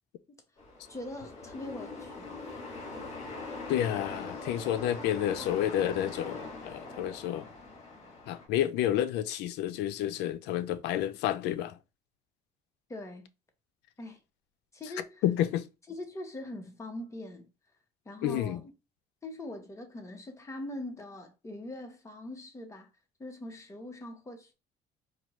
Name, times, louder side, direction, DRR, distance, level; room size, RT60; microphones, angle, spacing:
sound 1, 0.6-8.5, left 3 dB, 40° left, 2.0 m, -42 dB
voice 1, 0.9-2.3 12.9-13.3 14.0-14.2 14.7-15.2 15.9-17.5 18.0-18.7 19.2-22.9 23.2-24.5, left 1 dB, 15° left, 1.0 m, -42 dB
voice 2, 3.7-7.5 8.3-11.8 15.2-15.7 18.2-18.6, left 11 dB, 85° left, 0.5 m, -30 dB
4.5 x 2.3 x 3.0 m
cardioid pair, 110°, 17 cm